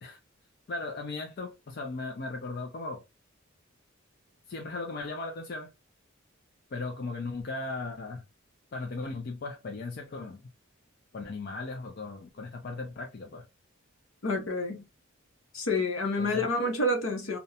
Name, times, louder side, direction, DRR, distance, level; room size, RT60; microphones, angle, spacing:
voice 1, 0.7-3.0 4.5-5.7 6.7-8.2 8.7-10.4 11.1-13.5 16.2-16.4, left 3 dB, 50° left, 0.4 m, -37 dB
voice 2, 14.2-14.8 15.5-17.4, left 2 dB, 70° left, 0.8 m, -28 dB
2.4 x 2.1 x 2.7 m
head